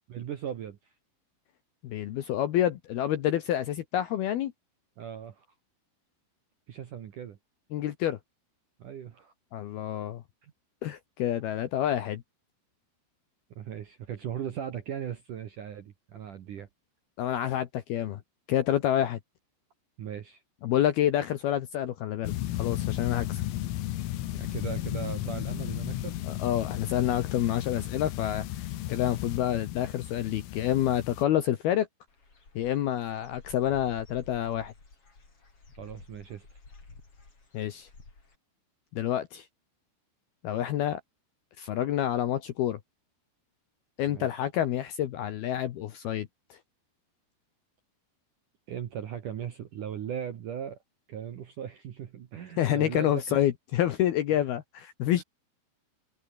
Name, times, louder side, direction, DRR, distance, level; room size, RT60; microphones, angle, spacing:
voice 1, 0.1-0.9 5.0-5.5 6.7-7.4 8.8-9.3 10.4-10.5 13.6-16.7 20.0-20.4 24.3-26.2 35.8-36.6 44.1-44.5 48.7-50.8 51.1-53.5 54.3-54.5 55.2-55.3, right 9 dB, 60° right, 2.2 m, -38 dB
voice 2, 1.8-4.5 7.7-8.2 9.5-10.2 10.8-12.2 17.2-18.2 18.5-19.2 20.6-23.4 26.3-28.5 28.9-31.9 32.6-34.7 37.5-37.9 38.9-39.4 40.4-41.0 41.6-42.8 44.0-46.3 52.6-55.2, left 11 dB, 70° left, 2.5 m, -28 dB
sound 1, 22.2-31.2, left 14 dB, 85° left, 4.3 m, -34 dB
Dog / Bird, 32.1-38.4, left 3 dB, 30° left, 6.2 m, -52 dB
omnidirectional pair, 5.9 m